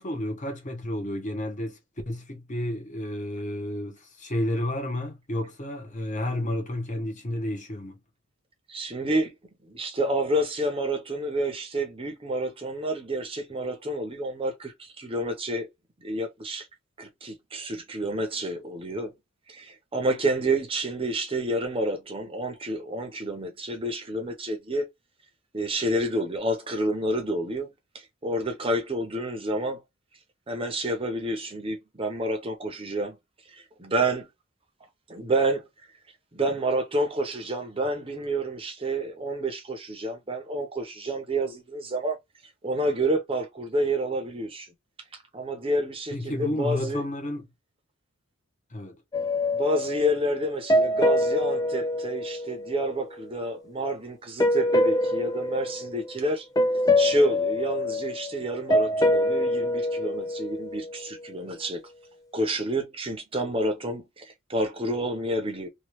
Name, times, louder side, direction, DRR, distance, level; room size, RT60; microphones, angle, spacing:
voice 1, 0.0-1.8 2.1-8.0 46.1-47.5 48.7-49.0, left 1 dB, 35° left, 0.9 m, -31 dB
voice 2, 8.7-9.4 9.6-15.7 16.0-16.7 17.0-19.1 19.5-24.9 25.5-29.8 30.5-33.2 33.5-34.3 35.1-35.6 36.3-42.2 42.6-44.7 45.1-47.0 49.5-56.5 57.0-61.8 62.3-65.7, right 1 dB, 25° right, 0.7 m, -29 dB
sound 1, 49.1-53.0 54.4-56.3 56.6-61.1, left 1 dB, 15° left, 0.3 m, -25 dB
3.0 x 2.4 x 3.0 m
head